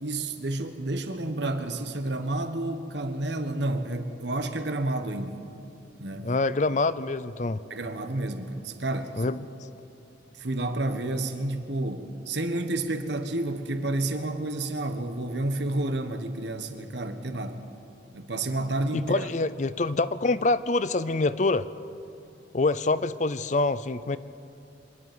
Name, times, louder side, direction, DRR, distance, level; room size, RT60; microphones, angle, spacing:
voice 1, 0.0-5.4 6.0-6.3 7.7-9.2 10.4-17.6 18.1-19.3, right 2 dB, 65° right, 7 dB, 1.4 m, -30 dB
voice 2, 6.2-7.6 9.2-9.4 18.9-21.7 22.5-24.2, left 3 dB, 40° left, 15 dB, 0.5 m, -25 dB
26.0 x 11.0 x 9.5 m, 2.8 s
head